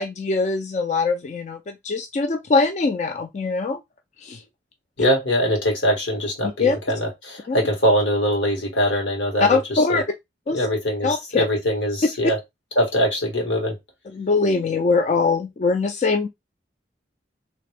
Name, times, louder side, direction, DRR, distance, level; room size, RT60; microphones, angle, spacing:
voice 1, 0.0-3.8 4.2-4.4 6.4-6.8 7.5-7.6 9.4-10.0 10.5-10.6 11.0-11.4 14.1-16.3, left 4 dB, 40° left, 0.4 m, -22 dB
voice 2, 5.0-10.0 10.5-12.4 12.8-13.7, equal, 80° left, 1.6 m, -22 dB
3.2 x 2.9 x 3.3 m
head